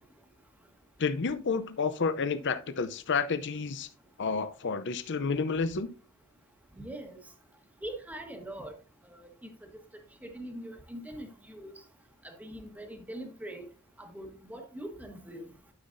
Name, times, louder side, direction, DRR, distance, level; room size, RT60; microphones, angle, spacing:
voice 1, 1.0-3.9 4.2-5.9, left 5 dB, 55° left, 12 dB, 0.6 m, -30 dB
voice 2, 6.8-7.2 7.8-8.8 9.0-9.5 10.2-11.7 12.2-13.7 14.0-15.5, right 1 dB, 5° right, 4 dB, 1.3 m, -42 dB
12.0 x 5.7 x 2.6 m, 0.35 s
head